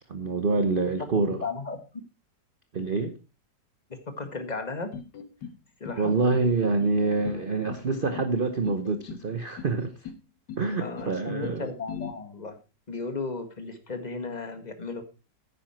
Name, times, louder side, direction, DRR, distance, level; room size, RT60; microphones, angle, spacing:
voice 1, 0.1-1.4 2.7-3.1 6.0-9.9 10.6-11.7, right 3 dB, 40° right, 0.9 m, -26 dB
voice 2, 1.3-1.8 3.9-4.9 5.8-6.1 10.8-12.6 12.9-15.0, left 3 dB, 25° left, 1.7 m, -35 dB
sound 1, 4.9-5.6 5.8-6.5 6.8-7.4 7.7-8.3 8.6-9.3 9.6-10.2 10.5-11.1 11.4-12.1, left 7 dB, 75° left, 1.8 m, -39 dB
10.0 x 9.8 x 4.4 m
omnidirectional pair, 1.9 m